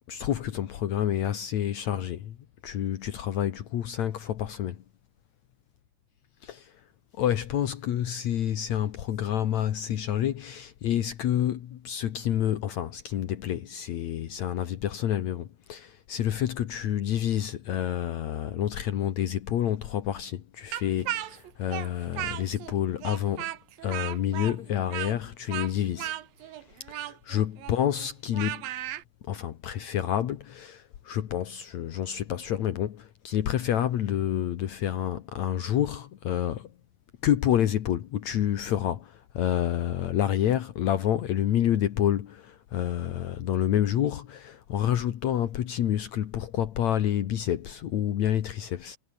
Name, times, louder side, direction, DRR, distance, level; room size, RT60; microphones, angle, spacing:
voice 1, 0.1-2.3 2.6-4.8 6.4-6.7 7.2-23.5 23.8-26.1 26.9-28.7 29.3-36.7 37.2-49.0, left 11 dB, 80° left, 1.6 m, -28 dB
Speech, 20.7-22.7 23.0-29.0, right 13 dB, 65° right, 2.5 m, -35 dB
omnidirectional pair, 5.3 m